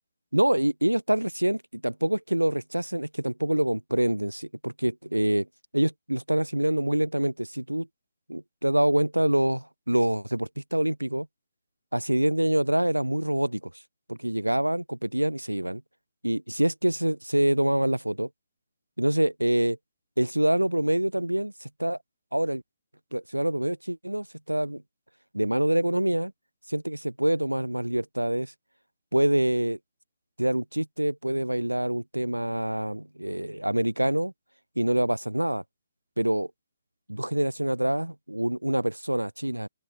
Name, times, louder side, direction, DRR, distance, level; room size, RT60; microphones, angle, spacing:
voice 1, 0.3-5.5 5.7-7.9 8.3-11.3 11.9-13.6 14.1-15.8 16.2-18.3 19.0-19.8 20.2-22.0 22.3-22.6 23.1-24.8 25.3-26.3 26.7-28.5 29.1-29.8 30.4-34.3 34.8-35.6 36.2-36.5 37.1-39.7, right 1 dB, 85° right, 0.7 m, -26 dB
open air
figure-of-eight pair, 135°, 0 cm